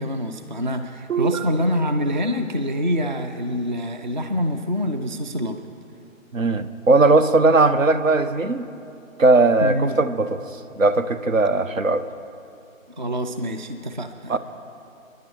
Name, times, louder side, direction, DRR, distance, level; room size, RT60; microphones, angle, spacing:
voice 1, 0.0-5.6 9.6-9.9 13.0-14.4, equal, 35° right, 7 dB, 0.5 m, -25 dB
voice 2, 1.1-1.4 6.3-8.7 9.2-10.4 10.8-12.0 14.3-14.4, right 3 dB, 70° right, 11 dB, 0.9 m, -18 dB
28.0 x 10.5 x 3.3 m, 2.7 s
figure-of-eight pair, 155°, 41 cm